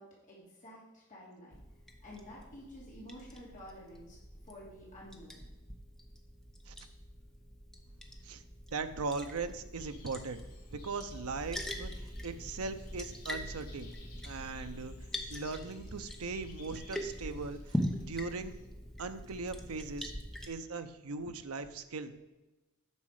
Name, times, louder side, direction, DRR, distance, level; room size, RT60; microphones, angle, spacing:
voice 1, 0.0-1.6 2.0-4.2 4.4-5.4, equal, 35° left, -6 dB, 2.7 m, -51 dB
Liquid, 1.5-20.5, equal, ahead, 0.8 m, -43 dB
voice 2, 8.7-10.4 10.7-13.9 14.2-14.9 15.3-18.5 19.0-20.1 20.5-22.1, right 4 dB, 70° right, 9 dB, 0.7 m, -39 dB
sound 1, 9.7-18.6, left 4 dB, 80° left, 3.0 m, -60 dB
9.6 x 6.3 x 4.8 m, 1.1 s
head